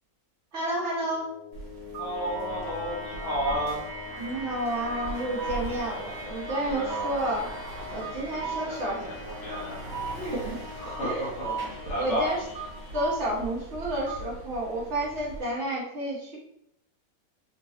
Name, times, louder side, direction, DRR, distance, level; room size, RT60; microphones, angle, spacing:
voice 1, 0.5-1.3 4.2-7.5 7.9-9.1 10.0-10.6 10.8-11.3 12.0-12.4 12.9-16.4, right 1 dB, 55° right, -6 dB, 1.2 m, -31 dB
sound 1, 0.7-13.8, left 3 dB, 35° left, 1.0 m, -41 dB
sound 2, 1.5-15.4, right 4 dB, 90° right, 1.4 m, -39 dB
voice 2, 2.0-3.8 6.6-7.3 8.3-8.9 9.2-9.8 10.8-11.6 11.8-12.3, equal, 55° left, -4 dB, 1.1 m, -32 dB
sound 3, 4.0-14.3, right 2 dB, 70° right, 0.5 m, -45 dB
4.0 x 2.2 x 2.7 m, 0.78 s
omnidirectional pair, 1.6 m